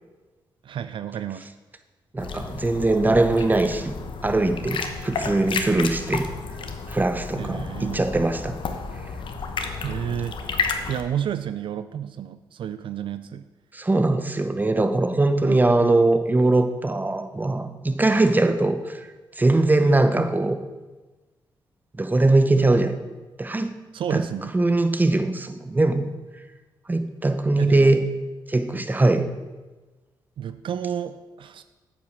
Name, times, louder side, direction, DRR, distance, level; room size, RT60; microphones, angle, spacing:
voice 1, 0.6-1.5 7.4-8.1 9.8-10.4 10.6-13.4 15.4-15.7 23.9-24.6 27.6-28.0 30.4-31.6, right 9 dB, 70° right, 12 dB, 0.4 m, -31 dB
voice 2, 2.1-3.9 4.2-6.3 6.9-8.6 13.7-19.1 19.4-20.6 22.0-23.0 23.4-23.7 24.1-24.2 24.5-26.1 26.9-28.0 28.5-29.2, right 2 dB, 20° right, 9 dB, 0.8 m, -21 dB
sound 1, 2.2-11.0, left 5 dB, 65° left, 1.0 m, -32 dB
8.7 x 5.9 x 6.4 m, 1.2 s
cardioid pair, 75°, 9 cm